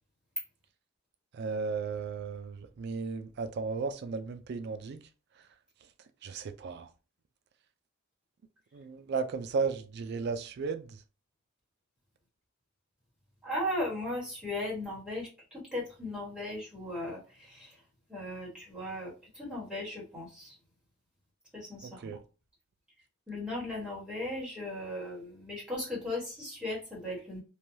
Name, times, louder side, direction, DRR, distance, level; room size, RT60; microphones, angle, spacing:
voice 1, 1.3-5.0 6.2-6.9 8.7-11.0 21.8-22.2, right 5 dB, 50° right, 0.3 m, -35 dB
voice 2, 13.4-17.7 18.1-20.5 21.5-22.2 23.3-27.4, left 1 dB, 5° right, 1.3 m, -37 dB
3.2 x 2.2 x 2.7 m
head